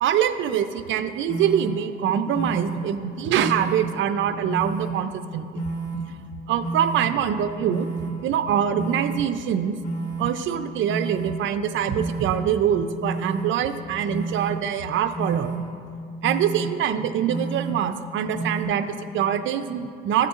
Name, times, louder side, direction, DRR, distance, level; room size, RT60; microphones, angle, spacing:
voice 1, 0.0-5.7 6.5-7.9 8.2-9.7 10.2-15.6 16.2-20.3, right 9 dB, 75° right, 10 dB, 0.5 m, -24 dB
sound 1, 1.3-1.7 2.3-2.8 3.4-3.8 4.5-4.9 5.5-6.0 6.6-7.0 7.7-8.1 8.7-9.2 9.8-10.2 10.9-11.3 12.0-12.4 13.0-13.4 14.1-14.5 15.2-15.6 16.2-16.6 17.3-17.7 18.4-18.6, right 3 dB, 80° left, 1.5 m, -30 dB
14.0 x 6.6 x 2.5 m, 2.3 s
cardioid pair, 90°, 20 cm